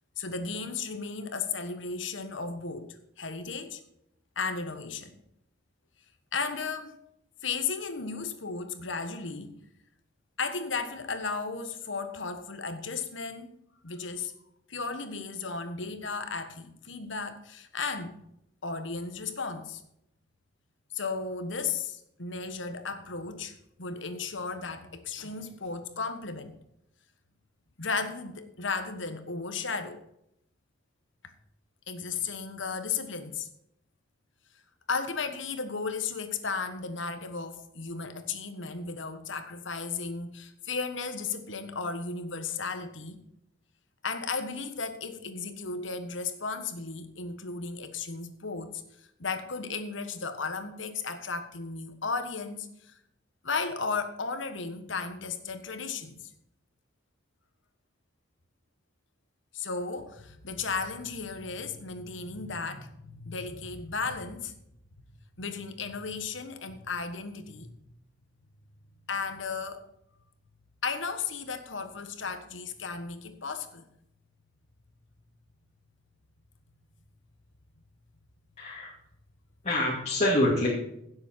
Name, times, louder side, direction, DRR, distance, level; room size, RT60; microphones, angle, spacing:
voice 1, 0.2-3.8 4.3-5.2 6.3-7.0 7.4-9.5 10.4-13.5 13.8-14.3 14.7-18.2 18.6-19.8 20.9-26.5 27.8-30.0 31.9-33.5 34.9-43.2 44.0-48.8 49.2-52.9 53.4-56.3 59.5-64.5 65.4-67.7 69.1-69.8 70.8-73.8, left 4 dB, 80° left, 1.5 m, -35 dB
voice 2, 78.6-78.9 79.6-80.7, left 1 dB, 35° left, 2.6 m, -25 dB
16.5 x 7.6 x 4.5 m
head